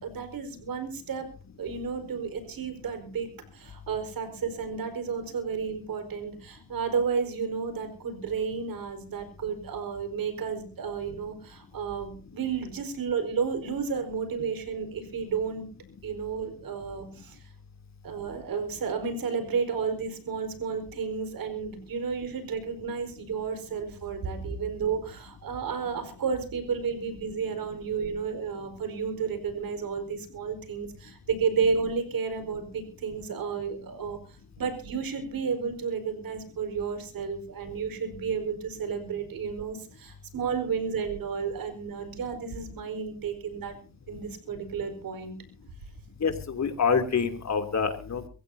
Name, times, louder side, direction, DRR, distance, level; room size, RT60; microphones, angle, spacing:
voice 1, 0.0-1.3 1.6-15.7 16.0-17.4 18.0-34.2 34.6-43.8 44.1-45.3, right 6 dB, 75° right, 8 dB, 4.6 m, -32 dB
voice 2, 46.2-48.3, left 6 dB, 50° left, 7 dB, 3.1 m, -26 dB
24.0 x 15.0 x 2.8 m, 0.36 s
cardioid pair, 70°, 35 cm